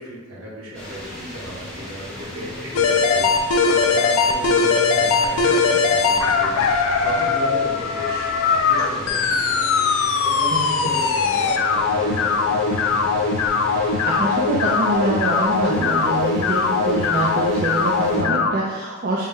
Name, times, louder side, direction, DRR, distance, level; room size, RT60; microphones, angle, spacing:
voice 1, 0.0-3.3 3.7-6.5 7.0-9.9 10.2-13.3, right 1 dB, 65° right, -5 dB, 1.0 m, -35 dB
sound 1, 0.7-18.2, left 1 dB, 5° left, 1.0 m, -36 dB
sound 2, 2.7-18.5, left 5 dB, 65° left, 0.3 m, -20 dB
voice 2, 14.1-19.3, right 2 dB, 45° right, -4 dB, 0.4 m, -24 dB
4.0 x 2.2 x 3.6 m, 1.2 s
head